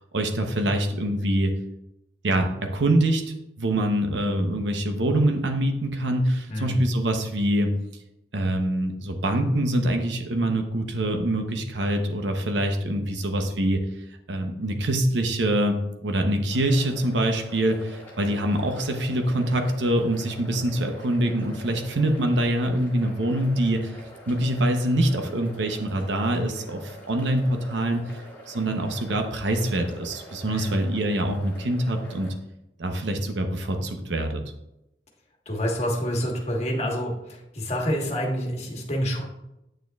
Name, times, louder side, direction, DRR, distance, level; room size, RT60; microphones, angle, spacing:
voice 1, 0.1-1.5 2.2-7.7 8.3-13.8 14.3-24.0 24.3-28.2 28.5-32.3 32.8-34.4, right 1 dB, 85° right, 5 dB, 0.8 m, -25 dB
sound 1, 16.5-32.3, equal, 10° left, 1.9 m, -45 dB
voice 2, 30.4-30.8 35.5-39.2, equal, 35° left, 0 dB, 1.3 m, -27 dB
8.9 x 6.4 x 2.4 m, 0.86 s
head